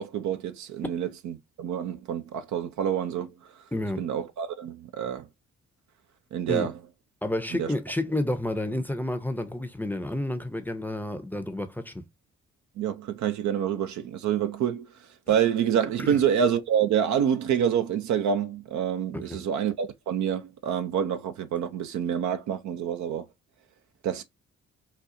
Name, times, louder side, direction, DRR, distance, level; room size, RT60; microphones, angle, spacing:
voice 1, 0.0-3.6 4.0-5.3 6.3-6.7 7.6-7.7 12.8-15.0 15.3-23.3 24.0-24.2, right 8 dB, 65° right, 0.6 m, -27 dB
voice 2, 3.7-4.0 6.5-6.7 7.2-12.0 16.0-16.2 19.1-19.4, left 1 dB, 5° left, 0.6 m, -30 dB
4.1 x 2.3 x 2.6 m
hypercardioid pair, 45°, 31 cm